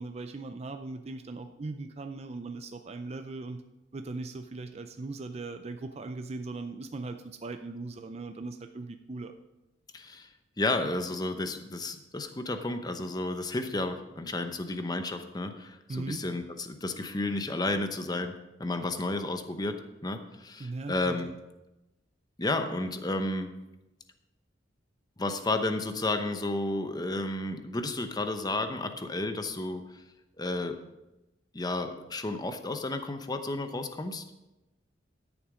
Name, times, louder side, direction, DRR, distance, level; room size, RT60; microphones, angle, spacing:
voice 1, 0.0-3.6 3.9-9.3 15.9-16.2 20.6-21.3, right 3 dB, 35° right, 7 dB, 0.5 m, -39 dB
voice 2, 9.9-10.3 10.6-18.3 18.6-21.3 22.4-23.5 25.2-29.8 30.4-30.8 31.5-34.2, left 2 dB, 20° left, 7 dB, 0.8 m, -32 dB
12.5 x 7.2 x 5.0 m, 0.99 s
head